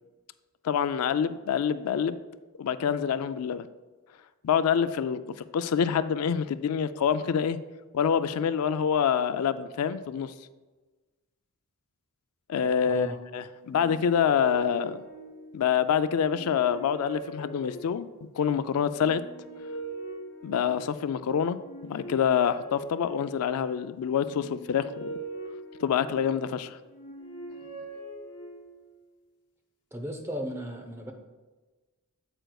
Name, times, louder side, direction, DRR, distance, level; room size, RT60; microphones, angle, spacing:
voice 1, 0.6-2.2 2.6-3.7 4.4-5.2 5.5-7.6 7.9-10.3 12.5-13.1 13.3-15.0 15.5-18.1 18.4-19.2 20.4-21.6 21.8-25.1 25.8-26.8, left 7 dB, 85° left, 12 dB, 0.4 m, -26 dB
voice 2, 12.8-13.2 29.9-31.1, right 1 dB, 10° right, 3 dB, 0.7 m, -35 dB
sound 1, 13.6-15.7 16.2-18.2 18.9-21.0 21.5-23.5 24.2-26.4 26.9-28.9, right 2 dB, 45° left, 2.0 m, -42 dB
8.8 x 7.8 x 2.3 m, 1.3 s
head